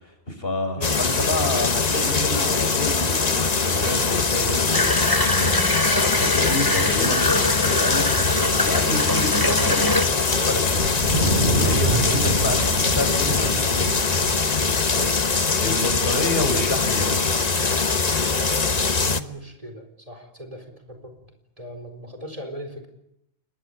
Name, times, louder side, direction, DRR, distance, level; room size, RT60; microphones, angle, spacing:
voice 1, 0.0-8.1 8.5-10.9 11.5-13.9 15.6-17.3, left 1 dB, 55° left, 7 dB, 5.3 m, -29 dB
sound 1, 0.8-19.2, left 4 dB, 40° left, 1.2 m, -22 dB
Water tap faucet / Bathtub (filling or washing), 4.7-10.0, left 1 dB, 20° left, 2.2 m, -24 dB
Wind, 10.8-17.3, right 1 dB, 60° right, 5.7 m, -28 dB
voice 2, 18.3-21.1 21.6-22.9, equal, 30° right, 6 dB, 4.4 m, -37 dB
28.5 x 21.0 x 8.2 m, 0.80 s
omnidirectional pair, 1.1 m